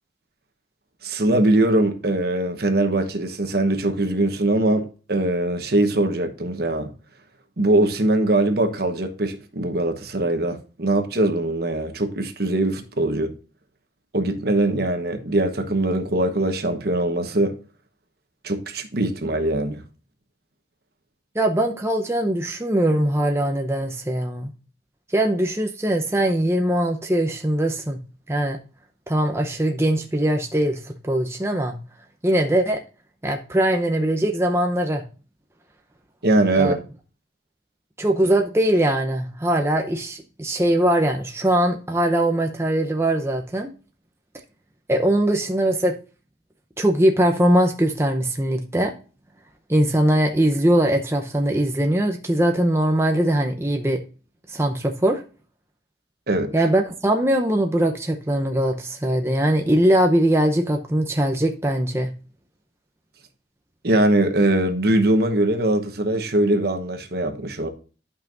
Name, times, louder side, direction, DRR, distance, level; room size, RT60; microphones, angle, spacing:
voice 1, 1.0-6.9 7.6-13.3 14.1-17.5 18.4-19.8 36.2-36.8 56.3-56.5 63.8-67.7, right 1 dB, 60° right, 1.2 m, -21 dB
voice 2, 21.3-24.5 25.1-28.0 28.3-28.6 29.1-31.8 32.2-32.8 33.2-35.0 36.6-36.8 38.0-43.7 44.9-46.0 46.8-48.9 49.7-54.0 54.5-55.2 56.5-62.1, right 1 dB, 15° right, 0.7 m, -21 dB
12.0 x 5.6 x 2.6 m
head